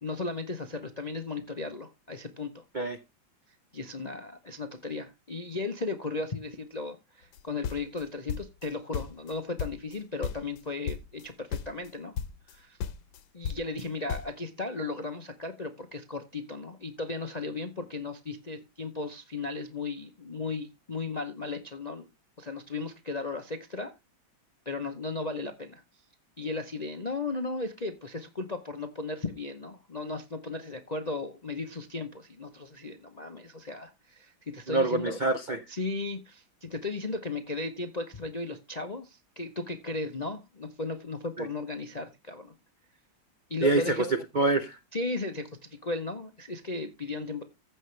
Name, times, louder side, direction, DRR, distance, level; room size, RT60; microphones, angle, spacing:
voice 1, 0.0-2.6 3.7-12.1 12.5-12.8 13.3-22.1 22.4-23.9 24.7-25.8 26.4-35.2 35.7-42.5 43.5-44.0 44.9-47.4, left 3 dB, 55° left, 7 dB, 0.4 m, -36 dB
sound 1, 7.3-8.7 8.9-10.0 10.2-10.6 10.9-11.3 11.5-11.9 12.2-12.6 12.8-14.4, left 7 dB, 75° left, 1.5 m, -35 dB
voice 2, 34.7-35.6 41.4-41.5 43.6-44.8, right 3 dB, 75° right, 7 dB, 0.4 m, -26 dB
15.0 x 5.7 x 3.3 m, 0.24 s
omnidirectional pair, 2.2 m